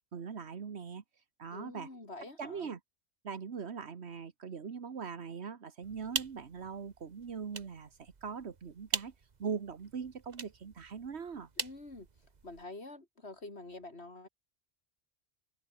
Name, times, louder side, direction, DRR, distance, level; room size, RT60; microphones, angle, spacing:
voice 1, 0.1-1.0 1.4-1.9 2.4-2.8 3.2-9.1 9.4-11.5, right 6 dB, 85° right, 1.6 m, -41 dB
voice 2, 1.5-2.7 11.6-12.1 12.4-14.3, left 2 dB, 80° left, 4.6 m, -47 dB
sound 1, 5.8-12.7, right 5 dB, 45° right, 1.2 m, -43 dB
omnidirectional pair, 1.1 m